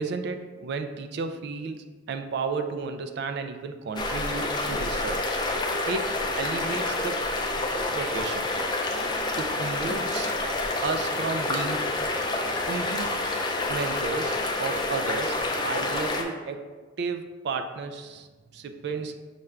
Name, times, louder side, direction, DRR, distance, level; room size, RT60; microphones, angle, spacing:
voice 1, 0.0-5.2 5.8-6.1 6.4-7.2 7.9-8.5 9.3-10.3 10.8-11.9 12.7-13.1 13.7-16.7 17.0-19.2, right 4 dB, 55° right, 7 dB, 0.3 m, -33 dB
sound 1, 4.0-16.2, left 2 dB, 20° left, 0.4 m, -28 dB
5.6 x 2.4 x 3.2 m, 1.3 s
head